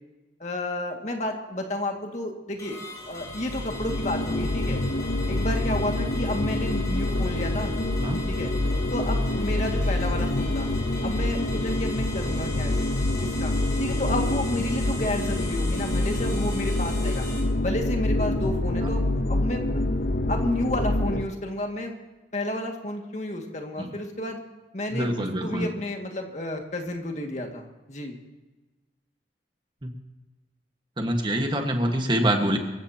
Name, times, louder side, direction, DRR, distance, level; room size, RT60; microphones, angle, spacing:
voice 1, 0.4-2.8 3.1-4.8 5.3-7.7 8.3-8.5 8.9-10.7 11.0-12.7 13.1-13.5 13.8-17.3 17.6-19.6 20.3-21.9 22.3-24.4 24.7-28.2, left 1 dB, 40° left, 2 dB, 2.1 m, -31 dB
sound 1, 2.6-17.4, left 2 dB, 20° left, 4.8 m, -40 dB
sound 2, 3.2-21.2, left 1 dB, 60° left, 0.9 m, -26 dB
voice 2, 24.9-25.7 29.8-29.9 31.0-32.6, right 1 dB, 25° right, 4 dB, 1.5 m, -25 dB
25.5 x 15.0 x 2.9 m, 1.2 s
head